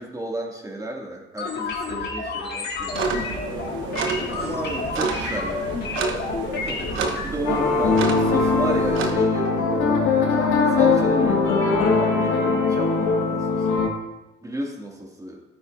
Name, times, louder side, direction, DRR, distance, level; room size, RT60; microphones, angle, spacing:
voice 1, 0.0-3.3 4.3-5.9 6.6-13.9 14.4-15.4, right 1 dB, 15° right, -1 dB, 2.3 m, -33 dB
sound 1, 1.4-7.3, left 4 dB, 55° left, 2.0 m, -30 dB
sound 2, 2.9-9.1, right 4 dB, 90° right, 1.1 m, -30 dB
sound 3, 7.5-13.9, left 4 dB, 85° left, 1.8 m, -20 dB
13.5 x 9.5 x 2.6 m, 1.0 s
cardioid pair, 90°, 20 cm